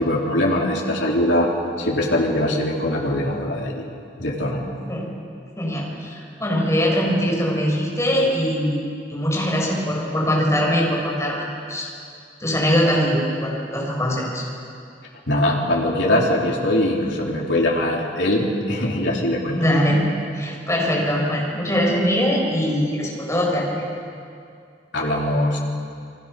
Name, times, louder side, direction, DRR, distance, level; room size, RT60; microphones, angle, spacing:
voice 1, 0.0-1.5 1.8-3.8 4.2-4.6 15.3-19.7 24.9-25.6, left 1 dB, 75° left, -2 dB, 4.0 m, -21 dB
voice 2, 5.6-11.9 12.4-14.4 19.5-20.0 20.3-23.8, equal, 15° left, -2 dB, 6.8 m, -22 dB
28.0 x 24.0 x 6.9 m, 2.4 s
head